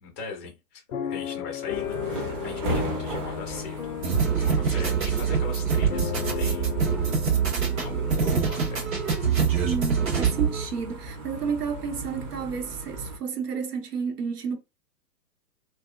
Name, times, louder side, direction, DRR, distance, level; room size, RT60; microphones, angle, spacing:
voice 1, 0.0-4.0 4.4-7.0 7.7-9.1, left 5 dB, 15° left, 0.4 m, -40 dB
sound 1, 0.9-9.0 9.6-9.7 10.0-10.2, left 8 dB, 60° left, 0.6 m, -35 dB
sound 2, 1.7-13.2, right 1 dB, 30° right, 0.9 m, -37 dB
sound 3, 4.0-10.6, right 6 dB, 60° right, 1.5 m, -24 dB
voice 2, 9.6-14.6, right 6 dB, 75° right, 0.9 m, -31 dB
2.7 x 2.2 x 2.3 m
figure-of-eight pair, 120°, 47 cm